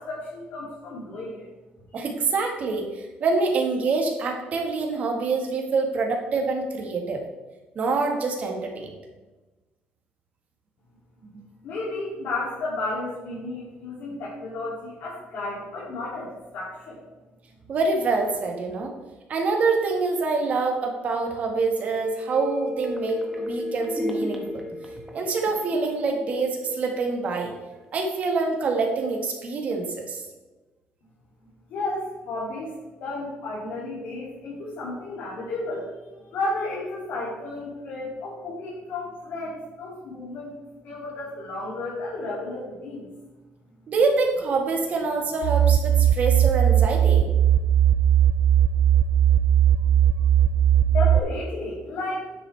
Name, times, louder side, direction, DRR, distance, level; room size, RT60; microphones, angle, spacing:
voice 1, 0.0-1.5 11.6-17.0 31.7-40.6 40.8-43.1 49.8-50.2 50.9-52.3, left 2 dB, 65° left, -7 dB, 2.8 m, -33 dB
voice 2, 1.9-7.2 7.8-9.0 11.3-11.4 17.7-18.9 19.3-24.6 25.1-27.5 27.9-30.2 43.9-47.3, right 3 dB, 40° right, 2 dB, 1.6 m, -26 dB
sound 1, 21.8-27.5 27.8-27.9, left 1 dB, 5° right, 1.2 m, -33 dB
sound 2, 45.4-51.2, right 10 dB, 90° right, 0.4 m, -19 dB
9.5 x 7.7 x 3.4 m, 1.2 s
cardioid pair, 160°, 4 cm